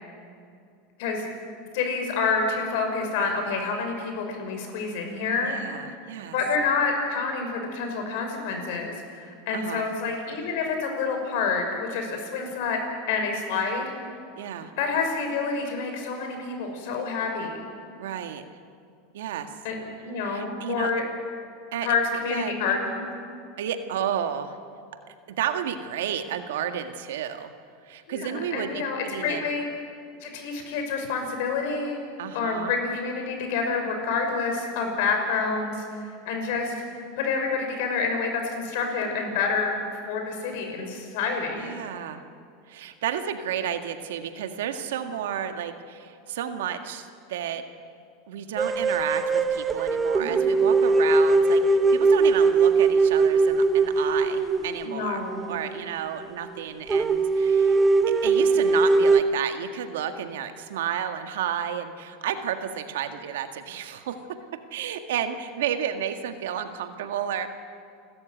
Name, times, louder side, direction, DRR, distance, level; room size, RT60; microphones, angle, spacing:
voice 1, 1.7-5.6 6.3-12.8 13.1-13.8 14.8-17.6 19.6-21.0 21.8-23.1 28.1-29.6 30.2-32.0 32.3-36.7 37.2-39.8 40.1-41.7 50.2-50.6 54.9-55.5, left 4 dB, 70° left, 4 dB, 5.9 m, -28 dB
voice 2, 5.4-6.4 9.5-9.9 14.4-14.7 18.0-18.4 19.1-19.5 20.2-20.9 21.7-22.5 23.6-24.6 25.3-27.5 27.8-29.4 32.2-32.7 41.6-42.2 42.7-47.6 48.3-55.2 55.5-57.8 58.2-64.2 64.7-67.5, right 9 dB, 85° right, 7 dB, 1.8 m, -32 dB
sound 1, 48.6-55.9 56.2-56.3 56.6-56.7 56.9-59.2, right 4 dB, 15° right, 1.0 m, -21 dB
29.5 x 13.5 x 9.1 m, 2.4 s
supercardioid pair, 130°, 0 cm